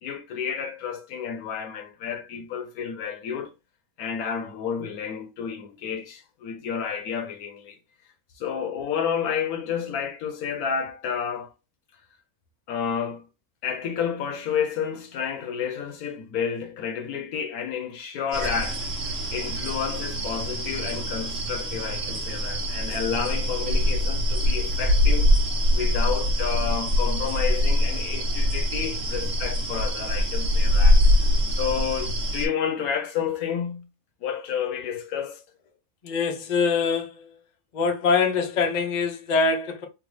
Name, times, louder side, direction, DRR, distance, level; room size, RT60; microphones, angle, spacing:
voice 1, 0.0-3.5 4.0-7.8 8.4-11.5 12.7-13.3 13.6-25.3 25.7-31.1 31.5-33.9 34.2-35.4, left 7 dB, 75° left, 1.2 m, -30 dB
sound 1, 18.3-32.5, left 1 dB, 50° right, 0.9 m, -23 dB
voice 2, 36.0-37.3 37.7-39.8, left 4 dB, 50° left, 0.5 m, -24 dB
3.5 x 2.2 x 3.2 m
omnidirectional pair, 1.6 m